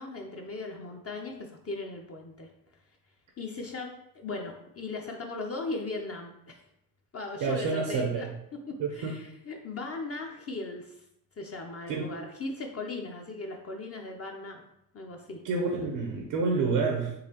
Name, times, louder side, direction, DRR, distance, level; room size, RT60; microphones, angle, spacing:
voice 1, 0.0-2.5 3.4-6.6 7.1-8.3 8.7-11.0 11.4-14.7 14.9-15.4, left 3 dB, 35° left, 2 dB, 0.5 m, -38 dB
voice 2, 7.4-8.3 8.8-9.1 11.9-12.1 15.4-17.1, right 4 dB, 75° right, 0 dB, 0.7 m, -28 dB
3.9 x 2.4 x 2.8 m, 0.80 s
supercardioid pair, 50°, 43 cm